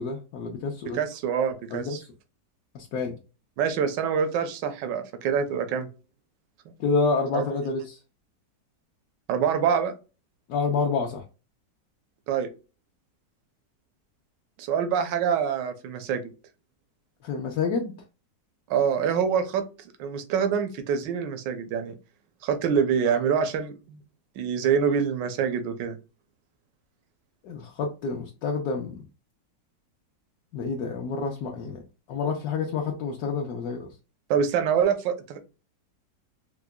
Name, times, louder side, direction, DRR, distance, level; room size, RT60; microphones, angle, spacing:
voice 1, 0.0-1.0 1.7-2.1 2.7-3.2 6.8-8.0 10.5-11.2 17.2-17.9 27.4-29.0 30.5-31.8 32.1-33.9, left 4 dB, 70° left, 0 dB, 1.1 m, -28 dB
voice 2, 0.9-2.0 3.6-5.9 7.3-7.4 9.3-9.9 12.3-12.5 14.6-16.2 18.7-19.6 20.0-21.9 22.4-24.0 24.4-26.0 34.3-35.4, right 7 dB, 85° right, 9 dB, 1.3 m, -25 dB
4.7 x 2.2 x 2.2 m, 0.32 s
omnidirectional pair, 1.9 m